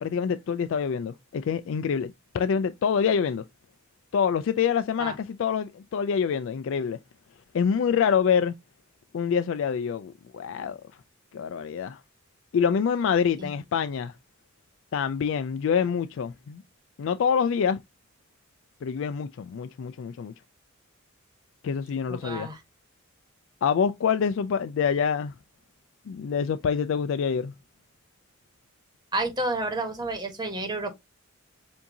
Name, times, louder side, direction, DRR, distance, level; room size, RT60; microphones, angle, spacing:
voice 1, 0.0-3.4 4.1-7.0 7.5-8.5 9.1-10.8 11.3-12.0 12.5-14.1 14.9-16.6 17.0-17.8 18.8-20.3 21.6-22.5 23.6-25.3 26.1-27.5, left 7 dB, 65° left, 0.3 m, -26 dB
voice 2, 22.1-22.6 29.1-30.9, right 2 dB, 20° right, 1.3 m, -30 dB
7.1 x 2.6 x 2.7 m
head